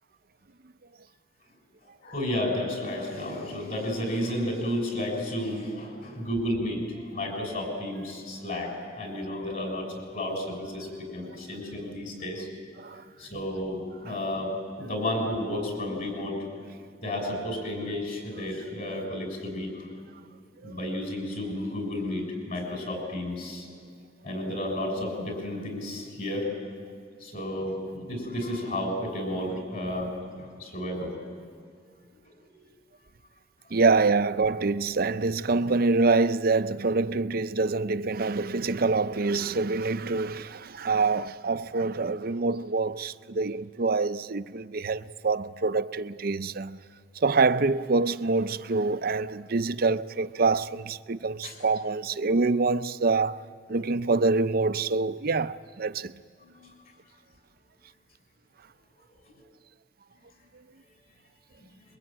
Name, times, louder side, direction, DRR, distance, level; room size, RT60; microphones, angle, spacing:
voice 1, 2.0-9.9 10.1-12.5 13.2-16.4 17.0-19.9 20.6-23.7 24.2-26.5 27.2-30.1 30.6-31.1 32.5-32.6 51.4-51.6 56.4-56.7 59.3-59.4 61.6-61.7, left 1 dB, 50° left, 6.3 m, -32 dB
voice 2, 33.7-46.8 47.2-53.4 53.7-56.1, right 3 dB, 50° right, 0.6 m, -26 dB
26.5 x 22.5 x 8.9 m
head